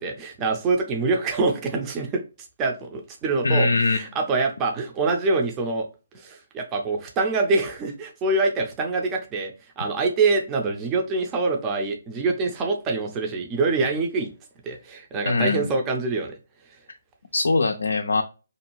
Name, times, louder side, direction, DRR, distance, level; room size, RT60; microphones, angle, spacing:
voice 1, 0.0-2.2 2.6-5.9 6.1-14.3 14.6-16.4, right 3 dB, 20° right, 2 dB, 0.6 m, -25 dB
voice 2, 3.4-4.0 15.3-15.7 17.3-18.2, left 3 dB, 70° left, 4 dB, 0.4 m, -22 dB
2.6 x 2.2 x 3.0 m, 0.31 s
figure-of-eight pair, 135°, 0 cm